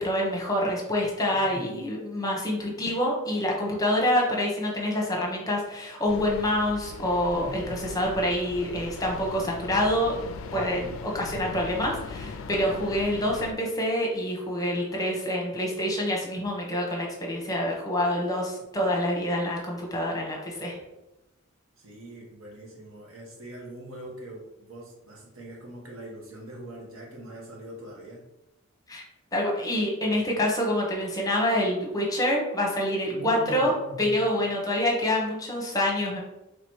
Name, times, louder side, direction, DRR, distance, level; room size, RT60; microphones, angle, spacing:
voice 1, 0.0-20.8 28.9-29.0 29.3-36.2, left 1 dB, 15° left, -1 dB, 0.9 m, -27 dB
voice 2, 1.3-1.9 7.3-8.0 10.8-10.9 21.8-28.2 33.1-34.2, right 1 dB, 70° right, -3 dB, 1.3 m, -42 dB
sound 1, 6.1-13.5, left 4 dB, 65° left, 0.3 m, -39 dB
3.3 x 2.9 x 4.6 m, 0.95 s
head